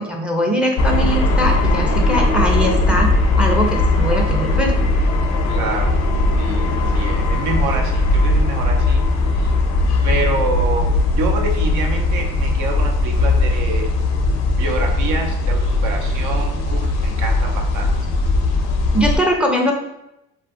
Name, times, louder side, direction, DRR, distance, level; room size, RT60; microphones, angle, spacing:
voice 1, 0.0-4.7 18.9-19.7, equal, 5° right, 1 dB, 0.4 m, -21 dB
sound 1, 0.8-19.2, left 2 dB, 65° left, 0.4 m, -18 dB
voice 2, 5.5-6.0 6.4-9.0 9.3-9.6 10.0-13.9 14.6-18.0, right 3 dB, 75° right, 2 dB, 0.6 m, -27 dB
2.6 x 2.5 x 2.4 m, 0.84 s
cardioid pair, 90°, 30 cm